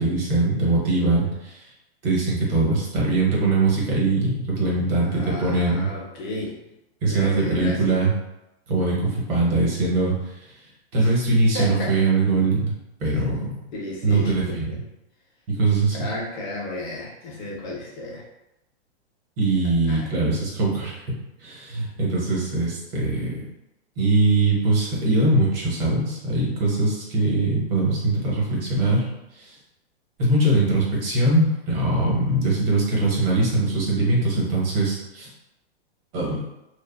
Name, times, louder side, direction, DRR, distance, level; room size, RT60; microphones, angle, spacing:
voice 1, 0.0-1.7 2.0-5.9 7.0-8.1 8.7-10.5 10.9-12.7 13.0-13.5 14.0-14.8 15.5-16.1 19.4-23.4 24.0-29.1 29.3-29.5 30.2-35.3 36.1-36.4, right 2 dB, 60° right, -4 dB, 1.1 m, -22 dB
voice 2, 5.0-6.6 7.1-8.0 11.0-11.1 11.5-12.0 13.7-14.8 15.9-18.2 19.9-20.1, left 1 dB, 45° left, -3 dB, 0.7 m, -33 dB
2.4 x 2.4 x 2.2 m, 0.90 s
hypercardioid pair, 145°, 32 cm